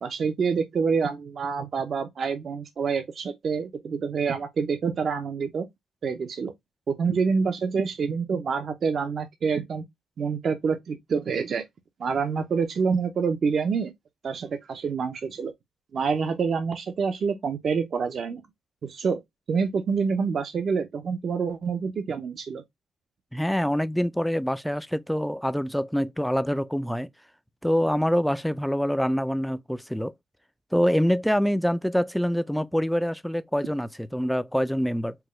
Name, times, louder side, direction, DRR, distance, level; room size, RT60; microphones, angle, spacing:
voice 1, 0.0-5.7 6.0-6.5 6.9-9.8 10.2-11.6 12.0-13.9 14.2-15.5 15.9-18.4 18.8-19.2 19.5-22.6, right 5 dB, 50° right, 0.6 m, -27 dB
voice 2, 23.3-27.1 27.6-30.1 30.7-35.2, equal, ahead, 0.3 m, -25 dB
4.5 x 2.2 x 3.0 m
cardioid pair, 90°, 0 cm